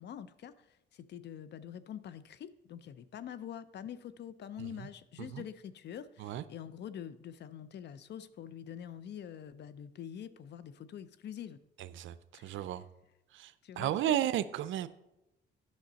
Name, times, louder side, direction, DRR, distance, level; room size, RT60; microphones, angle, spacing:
voice 1, 0.0-11.6 12.3-12.6 13.6-14.2, left 9 dB, 60° left, 15 dB, 0.6 m, -45 dB
voice 2, 12.4-12.8 13.3-13.5 13.8-14.9, right 11 dB, 75° right, 15 dB, 0.5 m, -32 dB
10.5 x 6.4 x 4.1 m, 0.91 s
cardioid pair, 90°, 20 cm